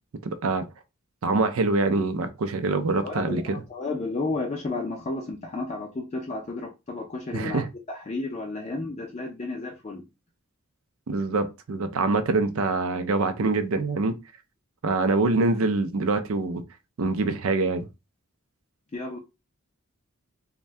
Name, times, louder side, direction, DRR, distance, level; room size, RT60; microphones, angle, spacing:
voice 1, 1.2-3.4 7.3-7.7 11.1-14.1 14.8-16.6 17.0-17.9, right 3 dB, 75° right, 0.5 m, -24 dB
voice 2, 3.0-10.1 18.9-19.2, left 3 dB, 30° left, 0.4 m, -32 dB
2.6 x 2.2 x 3.2 m
head